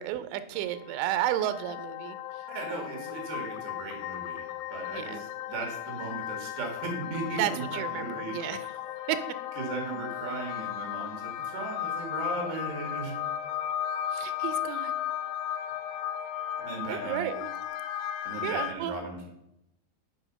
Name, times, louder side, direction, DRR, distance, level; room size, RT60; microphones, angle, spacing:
voice 1, 0.0-2.2 4.9-5.2 7.4-8.7 9.1-9.2 14.1-14.9 16.9-17.5 18.4-18.9, right 12 dB, 90° right, 12 dB, 2.9 m, -32 dB
sound 1, 0.6-18.7, left 11 dB, 90° left, 2.9 m, -35 dB
voice 2, 2.5-4.4 4.7-8.6 9.6-13.1 16.6-17.3 18.3-19.3, right 3 dB, 70° right, 2 dB, 4.1 m, -37 dB
8.8 x 5.1 x 5.4 m, 0.85 s
omnidirectional pair, 5.0 m